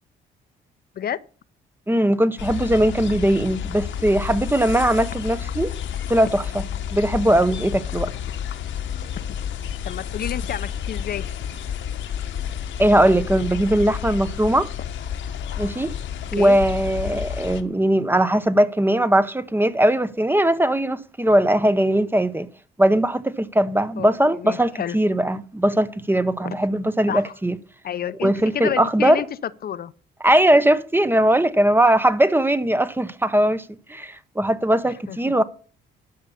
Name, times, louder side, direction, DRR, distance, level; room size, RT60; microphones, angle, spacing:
voice 1, 1.9-5.7 6.1-6.6 6.9-8.1 12.8-14.7 15.6-15.9 16.3-22.5 22.8-27.6 28.2-29.2 30.2-35.4, right 1 dB, 10° right, 0.7 m, -20 dB
sound 1, 2.4-17.6, left 9 dB, 70° left, 1.1 m, -30 dB
voice 2, 9.8-11.3 16.3-16.6 24.0-25.0 26.4-26.5 27.1-27.2 27.8-29.3 29.6-29.9 35.1-35.2, left 9 dB, 50° left, 0.6 m, -29 dB
12.5 x 5.4 x 6.9 m
cardioid pair, 90°, 20 cm